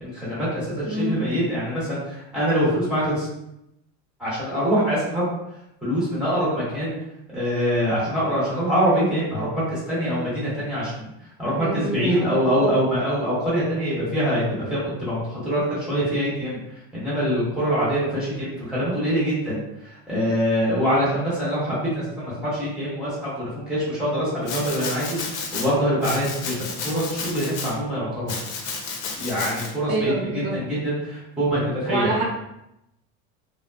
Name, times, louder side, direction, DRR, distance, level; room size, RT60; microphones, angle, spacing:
voice 1, 0.0-3.3 4.2-5.3 5.8-7.0 7.3-11.1 11.4-28.4 29.2-32.2, equal, 5° right, -10 dB, 1.2 m, -24 dB
voice 2, 0.8-1.2 11.5-12.7 29.9-30.6 31.9-32.2, right 2 dB, 55° right, -2 dB, 0.8 m, -27 dB
Domestic sounds home sounds, 24.4-25.7 26.0-27.7 28.3-29.7, left 4 dB, 75° left, 0.7 m, -32 dB
3.7 x 2.1 x 2.3 m, 0.85 s
cardioid pair, 175°, 29 cm